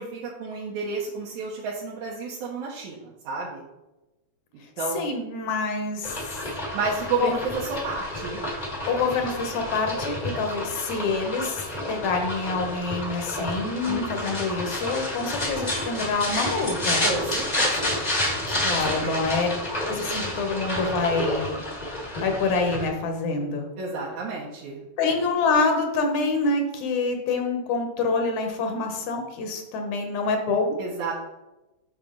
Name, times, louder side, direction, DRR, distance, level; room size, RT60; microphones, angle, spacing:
voice 1, 0.0-3.6 4.8-5.0 6.7-8.4 13.9-14.4 17.0-18.0 18.4-19.3 23.8-24.8 30.8-31.1, right 4 dB, 90° right, -5 dB, 2.5 m, -31 dB
voice 2, 4.9-6.2 7.2-7.3 8.8-17.0 18.6-19.5 19.9-21.6 22.2-23.7 25.0-30.8, left 4 dB, 75° left, 4 dB, 2.3 m, -26 dB
sound 1, 6.0-22.9, left 1 dB, 35° left, 0.6 m, -30 dB
6.7 x 6.0 x 3.9 m, 1.0 s
omnidirectional pair, 3.3 m